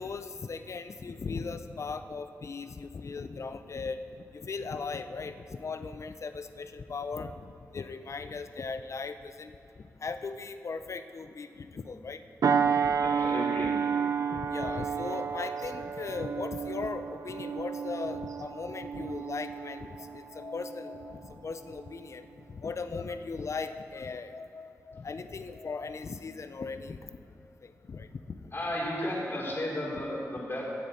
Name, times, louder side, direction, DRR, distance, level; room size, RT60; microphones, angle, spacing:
voice 1, 0.0-4.0 4.3-7.3 7.7-9.5 10.0-12.2 12.8-12.9 13.6-13.7 14.3-27.0 27.6-28.4, left 4 dB, 55° left, 10 dB, 0.5 m, -38 dB
sound 1, 12.4-21.3 21.7-22.0, right 6 dB, 75° right, 0.4 m, -31 dB
voice 2, 13.0-13.7 28.5-30.6, left 1 dB, 40° left, -4 dB, 3.0 m, -33 dB
16.5 x 6.7 x 4.2 m, 2.6 s
cardioid pair, 65°, 6 cm